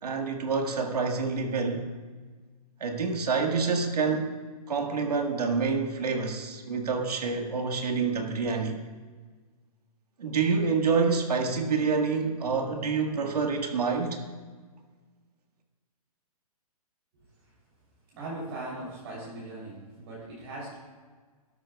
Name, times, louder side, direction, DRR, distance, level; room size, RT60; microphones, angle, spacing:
voice 1, 0.0-1.9 2.8-4.3 4.7-8.8 10.2-14.3, right 5 dB, 85° right, 3 dB, 1.7 m, -27 dB
voice 2, 18.1-20.7, right 2 dB, 40° right, -6 dB, 3.3 m, -39 dB
14.5 x 12.0 x 2.3 m, 1.5 s
hypercardioid pair, 170°, 19 cm